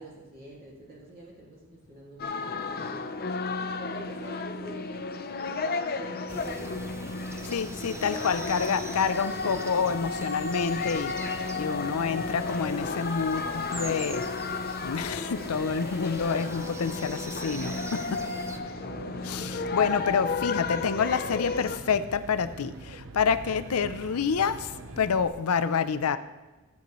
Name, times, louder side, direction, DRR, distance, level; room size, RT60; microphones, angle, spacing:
voice 1, 0.0-3.2 3.8-6.8 7.7-8.1 18.2-18.3 18.9-19.1 19.3-20.0 23.1-23.4, right 1 dB, 45° right, -5 dB, 2.2 m, -46 dB
sound 1, 2.2-21.8, left 4 dB, 45° left, 0.7 m, -33 dB
sound 2, 6.3-18.6, right 2 dB, 15° right, 0.5 m, -42 dB
voice 2, 7.5-11.1 11.6-14.2 14.8-18.0 19.2-24.7 25.0-26.2, left 6 dB, 85° left, 13 dB, 0.5 m, -28 dB
Aircraft, 18.6-25.3, right 2 dB, 70° right, 0.8 m, -43 dB
16.0 x 8.4 x 3.1 m, 1.1 s
head